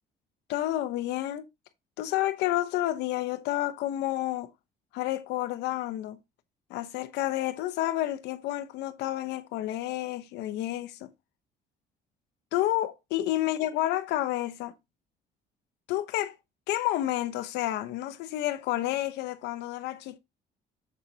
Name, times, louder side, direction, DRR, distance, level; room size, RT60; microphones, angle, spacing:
voice 1, 0.5-1.5 2.0-4.5 4.9-6.2 6.7-11.1 12.5-14.7 15.9-16.3 16.7-20.2, left 14 dB, 85° left, 0.8 m, -30 dB
7.5 x 6.7 x 2.7 m
cardioid pair, 110°, 17 cm